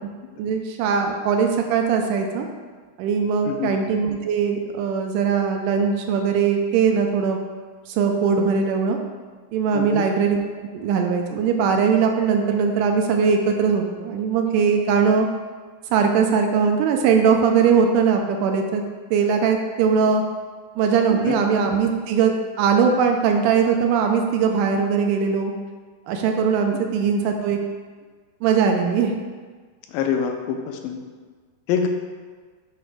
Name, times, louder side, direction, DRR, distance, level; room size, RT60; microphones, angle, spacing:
voice 1, 0.4-2.5 3.0-7.4 7.9-9.0 9.5-10.4 10.7-15.3 15.9-18.8 19.1-20.2 20.8-22.3 22.6-25.5 26.1-27.6 28.4-29.1, right 6 dB, 80° right, 4 dB, 1.9 m, -20 dB
voice 2, 3.4-3.7 9.7-10.1 21.3-21.4 29.9-31.0 31.7-31.9, left 7 dB, 85° left, 4 dB, 2.4 m, -25 dB
8.2 x 3.0 x 4.8 m, 1.5 s
omnidirectional pair, 4.1 m